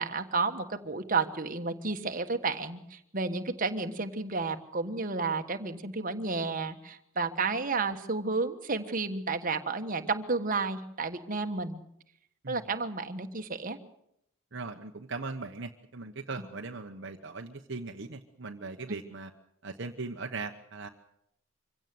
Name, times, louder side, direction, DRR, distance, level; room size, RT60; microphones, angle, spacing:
voice 1, 0.0-11.8 12.5-13.8, right 3 dB, 40° right, 7 dB, 1.5 m, -31 dB
voice 2, 14.5-19.3 19.6-20.9, right 3 dB, 55° right, 4 dB, 1.1 m, -39 dB
25.0 x 16.5 x 7.9 m, 0.75 s
head